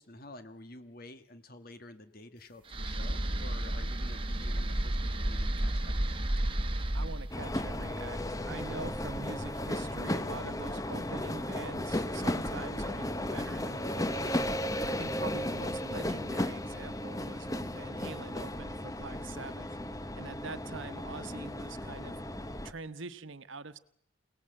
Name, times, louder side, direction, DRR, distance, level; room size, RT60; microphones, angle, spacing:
voice 1, 0.0-6.3, left 2 dB, 45° left, 9 dB, 1.5 m, -50 dB
sound 1, 2.7-9.9, right 1 dB, 25° right, 1.4 m, -33 dB
voice 2, 6.9-14.5 14.8-19.7 20.1-23.8, right 3 dB, 65° right, 14 dB, 1.1 m, -45 dB
sound 2, 7.3-22.7, left 1 dB, 15° left, 1.0 m, -35 dB
28.5 x 19.0 x 7.8 m, 0.75 s
head